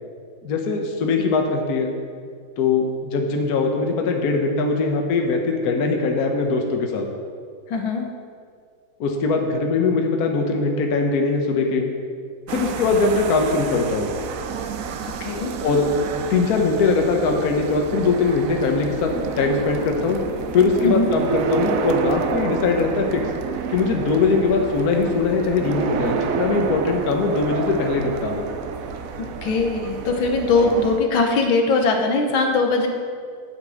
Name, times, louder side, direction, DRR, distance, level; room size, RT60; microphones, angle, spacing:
voice 1, 0.4-1.9 2.6-7.1 9.0-11.9 12.5-14.1 15.6-15.8 16.1-20.2 20.5-23.2 23.7-28.5 30.6-30.7, left 4 dB, 55° left, 2 dB, 1.4 m, -21 dB
voice 2, 7.7-8.1 15.2-15.5 20.8-21.1 29.2-32.9, left 3 dB, 75° left, 3 dB, 1.8 m, -21 dB
sound 1, 12.5-31.0, right 6 dB, 85° right, 0.7 m, -29 dB
9.0 x 5.9 x 7.8 m, 2.1 s
omnidirectional pair, 2.2 m